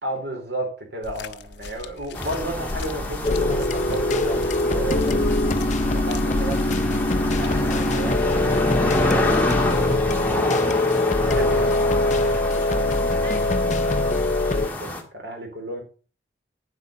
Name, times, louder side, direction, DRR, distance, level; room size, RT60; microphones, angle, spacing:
voice 1, 0.0-5.4 5.8-6.7 7.2-10.4 11.2-11.7 12.0-15.8, right 1 dB, 70° right, 2 dB, 3.9 m, -34 dB
sound 1, 1.0-8.3 9.1-9.2, left 2 dB, 80° left, 0.7 m, -34 dB
sound 2, 2.1-15.0, left 1 dB, 10° left, 1.7 m, -28 dB
sound 3, 3.2-14.7, left 2 dB, 40° left, 0.6 m, -23 dB
9.5 x 8.2 x 5.5 m, 0.36 s
head